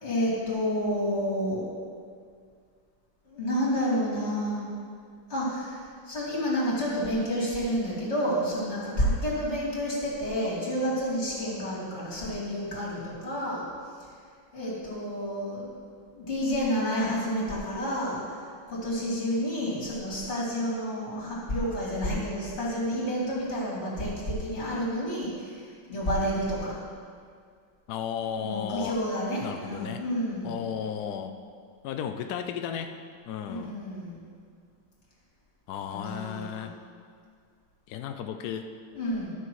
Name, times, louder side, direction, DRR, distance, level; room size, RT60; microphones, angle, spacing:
voice 1, 0.0-1.6 3.3-4.7 5.3-13.6 14.5-15.7 16.1-18.4 18.7-26.8 28.4-30.6 33.5-34.2 35.9-36.7 38.9-39.3, equal, 35° left, -7 dB, 3.1 m, -30 dB
voice 2, 27.9-29.0 29.4-30.0 30.4-31.4 31.8-32.9 33.3-33.7 35.7-36.8 37.9-38.7, left 8 dB, 85° left, 7 dB, 0.8 m, -34 dB
13.0 x 6.7 x 4.7 m, 2.1 s
omnidirectional pair, 2.2 m